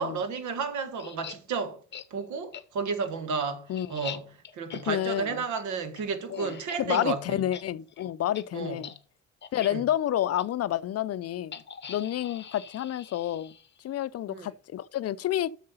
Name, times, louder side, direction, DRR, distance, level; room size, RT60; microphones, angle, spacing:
voice 1, 0.0-1.8 2.1-4.3 4.5-7.4 8.5-8.8 9.6-9.9 14.3-14.5, right 5 dB, 75° right, 1.4 m, -32 dB
sound 1, 1.0-1.4 1.9-2.1 2.5-2.6 3.1-7.1 7.4-7.6 7.9-8.0 8.3-8.4 8.8-9.0 9.4-9.7 10.4-10.5 11.5-13.9, left 7 dB, 35° left, 0.8 m, -44 dB
voice 2, 4.9-5.4 6.3-8.9 9.5-11.6 11.9-13.5 13.8-15.5, left 12 dB, 55° left, 0.5 m, -29 dB
7.6 x 6.5 x 5.4 m
cardioid pair, 90°, 30 cm